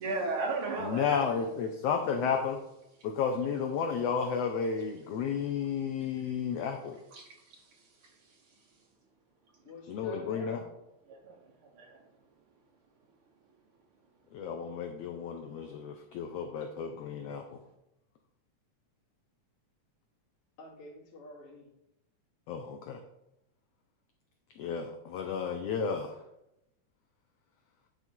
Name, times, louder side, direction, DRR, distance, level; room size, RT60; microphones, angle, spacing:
voice 1, 0.0-1.5 2.2-2.3 7.1-7.6 8.0-8.1 11.1-11.4 11.7-12.0, right 3 dB, 65° right, 1 dB, 1.3 m, -35 dB
voice 2, 0.8-2.6 3.0-7.0 9.9-10.6 14.3-17.4 22.5-23.0 24.6-26.1, left 6 dB, 90° left, 4 dB, 1.4 m, -32 dB
voice 3, 9.7-10.7 20.6-21.7, left 1 dB, 65° left, -6 dB, 3.6 m, -47 dB
10.0 x 4.1 x 4.5 m, 0.86 s
omnidirectional pair, 3.6 m